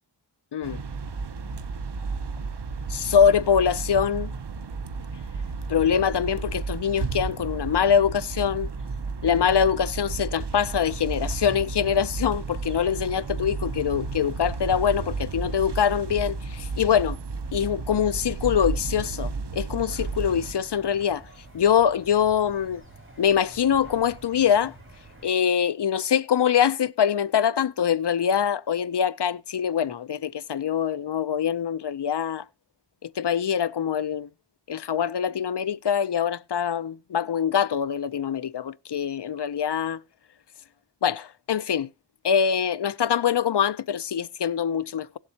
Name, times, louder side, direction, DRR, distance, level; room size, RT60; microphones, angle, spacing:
sound 1, 0.6-20.5, right 4 dB, 75° right, 0.8 m, -33 dB
voice 1, 2.9-4.3 5.7-8.7 9.2-17.2 17.5-21.2 21.5-22.8 23.2-24.7 25.2-32.4 33.0-34.3 34.7-40.0 41.0-41.9 42.2-45.2, left 8 dB, 70° left, 0.6 m, -24 dB
sound 2, 19.9-25.3, right 1 dB, 30° right, 4.7 m, -48 dB
17.0 x 7.4 x 2.8 m
wide cardioid pair, 40°, 42 cm